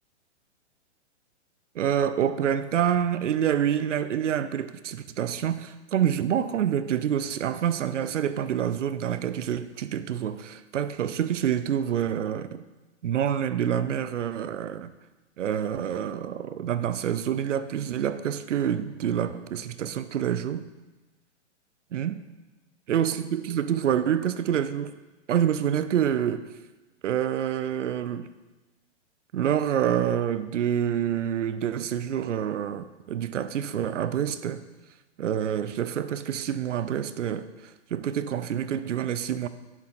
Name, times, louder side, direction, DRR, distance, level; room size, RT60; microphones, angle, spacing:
voice 1, 1.7-12.6 13.0-14.9 15.4-20.6 21.9-22.2 22.9-25.0 25.3-26.5 27.0-28.3 29.3-34.6 35.2-39.5, right 9 dB, 80° right, 13 dB, 0.8 m, -27 dB
10.5 x 6.7 x 5.7 m, 1.1 s
hypercardioid pair, 180°, 36 cm